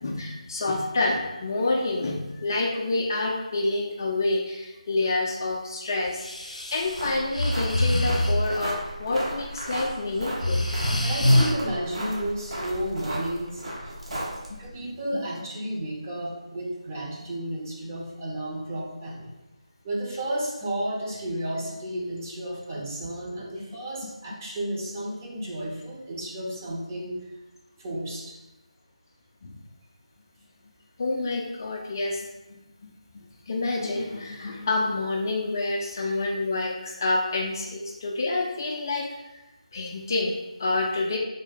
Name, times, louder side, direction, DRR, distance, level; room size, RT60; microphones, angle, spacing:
voice 1, 0.0-10.6 14.5-14.7 15.1-15.2 24.0-24.1 29.4-29.6 31.0-32.3 32.8-39.1 39.7-41.2, left 2 dB, 30° left, 0 dB, 0.3 m, -28 dB
Breathing, 6.1-8.6 9.5-9.8 10.2-11.5, left 1 dB, 75° left, 0.6 m, -24 dB
sound 1, 6.7-14.7, right 1 dB, 55° right, 0.8 m, -35 dB
voice 2, 11.0-13.6 14.6-19.3 19.8-27.2 27.8-28.3, right 1 dB, 25° right, -4 dB, 0.6 m, -32 dB
3.3 x 2.2 x 4.0 m, 1.0 s
figure-of-eight pair, 160°, 4 cm